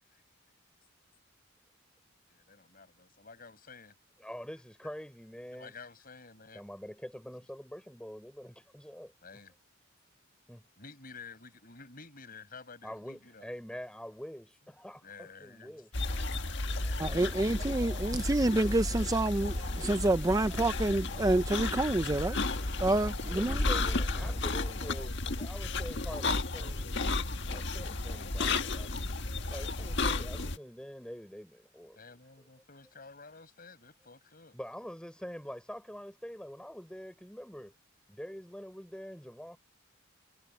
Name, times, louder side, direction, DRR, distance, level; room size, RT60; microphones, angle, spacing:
voice 1, 2.3-3.9 5.5-6.6 9.2-9.5 10.8-13.5 15.0-15.8 31.9-34.6, left 4 dB, 45° left, 7.6 m, -51 dB
voice 2, 4.2-5.7 6.5-9.1 10.5-10.7 12.8-16.3 16.7-17.6 23.2-29.2 29.5-32.0 34.5-37.7 38.1-39.6, equal, 5° left, 5.9 m, -45 dB
Dogs barking splashing panting, 15.9-30.6, left 2 dB, 60° left, 1.7 m, -33 dB
voice 3, 17.0-22.4 22.8-23.6, right 2 dB, 15° right, 0.5 m, -28 dB
head